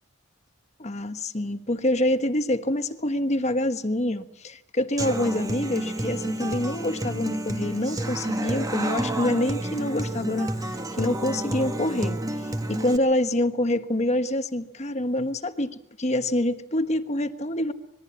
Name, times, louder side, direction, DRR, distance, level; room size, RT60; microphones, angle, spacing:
voice 1, 0.8-12.2 12.7-17.7, left 1 dB, 35° left, 9 dB, 1.3 m, -26 dB
Human voice / Acoustic guitar, 5.0-13.0, right 1 dB, 20° right, 1.6 m, -30 dB
26.0 x 21.0 x 8.6 m, 0.83 s
head